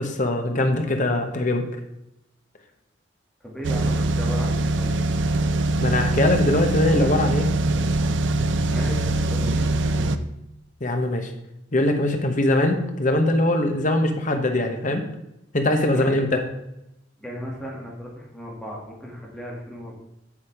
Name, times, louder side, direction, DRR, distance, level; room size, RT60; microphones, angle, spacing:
voice 1, 0.0-1.7 5.8-7.5 10.8-11.3 11.7-15.0 15.5-16.4, left 1 dB, 40° left, 5 dB, 1.1 m, -22 dB
voice 2, 3.4-4.9 8.7-10.2 15.9-16.4 17.2-19.9, equal, 5° left, -4 dB, 2.3 m, -36 dB
sound 1, 3.6-10.2, right 2 dB, 70° right, 0.5 m, -23 dB
7.3 x 7.2 x 4.8 m, 0.86 s
head